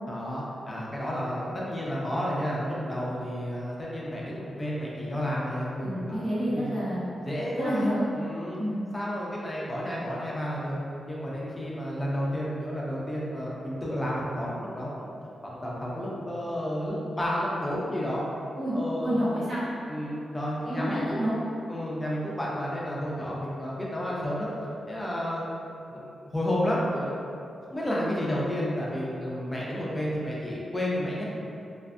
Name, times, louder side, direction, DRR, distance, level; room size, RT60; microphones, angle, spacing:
voice 1, 0.1-6.2 6.5-6.7 7.2-8.6 8.9-10.8 11.1-15.1 15.4-18.2 18.7-19.2 19.9-21.4 21.7-24.5 24.9-25.4 25.9-27.1 27.7-31.2, equal, 15° left, -5 dB, 0.4 m, -31 dB
voice 2, 5.8-7.1 7.6-8.0 8.5-8.8 18.6-18.8 19.0-19.6 20.6-21.4, equal, 50° right, -13 dB, 0.9 m, -29 dB
2.4 x 2.3 x 2.4 m, 2.6 s
wide cardioid pair, 165°, 0 cm